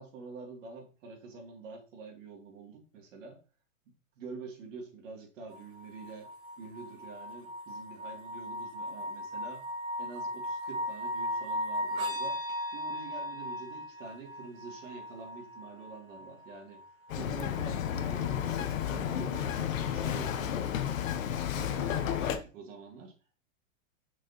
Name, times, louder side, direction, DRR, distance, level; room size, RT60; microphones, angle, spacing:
voice 1, 0.0-3.4 4.1-9.7 10.0-12.4 12.7-16.8 17.1-21.0 21.5-23.4, right 4 dB, 70° right, 1 dB, 2.8 m, -47 dB
sound 1, 5.5-17.5 18.9-19.0, equal, 85° right, 2.7 m, -37 dB
Bird vocalization bird call bird song, 17.1-22.4, left 9 dB, 70° left, 1.0 m, -32 dB
6.2 x 6.2 x 2.9 m, 0.34 s
hypercardioid pair, 145°, 40 cm